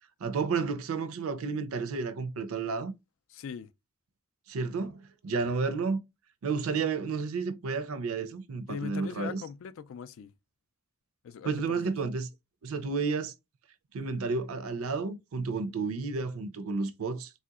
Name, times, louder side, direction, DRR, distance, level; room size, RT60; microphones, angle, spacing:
voice 1, 0.2-2.9 4.5-6.0 6.4-9.4 11.4-12.3 12.6-13.3 13.9-17.3, right 4 dB, 85° right, 0.4 m, -31 dB
voice 2, 3.3-3.7 8.7-10.3 11.2-11.9, left 6 dB, 70° left, 0.3 m, -40 dB
3.2 x 2.7 x 2.3 m
head